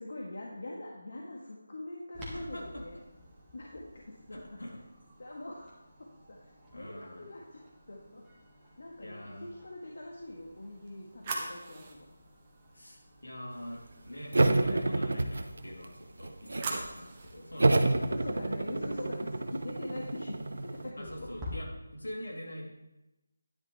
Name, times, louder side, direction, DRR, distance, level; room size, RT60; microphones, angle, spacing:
voice 1, 0.0-3.0 3.5-4.4 5.2-7.6 7.9-8.2 8.8-12.0 18.1-21.3, left 1 dB, 60° left, -2 dB, 1.5 m, -43 dB
Clock, 2.1-21.5, left 1 dB, 10° right, 1.8 m, -53 dB
voice 2, 2.2-2.8 4.3-4.8 6.7-7.3 9.0-9.5 12.7-17.9 21.0-22.7, equal, 85° left, -2 dB, 3.0 m, -44 dB
sound 1, 10.4-13.5 15.9-17.4, right 3 dB, 25° right, 1.3 m, -42 dB
sound 2, 14.3-15.9 16.2-16.9 17.6-20.9, right 2 dB, 65° right, 0.8 m, -29 dB
10.0 x 10.0 x 3.3 m, 0.96 s
figure-of-eight pair, 160°, 0 cm